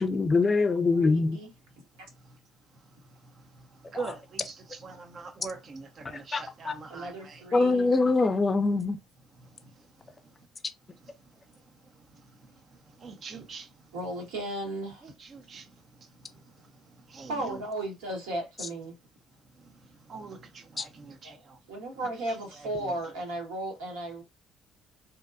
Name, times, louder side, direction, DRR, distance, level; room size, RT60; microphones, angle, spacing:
voice 1, 0.0-1.4 6.3-6.7 7.5-9.0 20.8-20.9, left 3 dB, 30° left, 0.4 m, -24 dB
voice 2, 0.9-1.5 6.9-7.9 13.9-15.0 17.3-19.0 21.7-24.2, right 1 dB, 75° right, 0.9 m, -35 dB
voice 3, 3.9-7.4 13.0-13.7 15.0-15.7 17.1-17.6 20.1-21.4 22.5-22.9, right 4 dB, 45° right, 0.6 m, -42 dB
2.7 x 2.2 x 2.4 m
hypercardioid pair, 50°, 0 cm